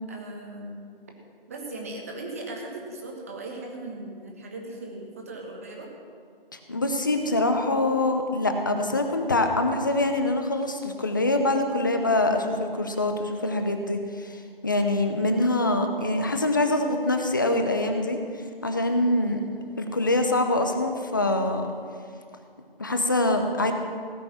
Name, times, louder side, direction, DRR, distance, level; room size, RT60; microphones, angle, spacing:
voice 1, 0.1-0.8 1.5-5.9 19.1-19.4, right 2 dB, 15° right, 0 dB, 1.2 m, -38 dB
voice 2, 6.5-18.2 18.6-19.4 19.8-21.6 22.8-23.7, left 2 dB, 20° left, 5 dB, 0.8 m, -24 dB
17.0 x 6.7 x 8.6 m, 2.2 s
figure-of-eight pair, 165°, 30 cm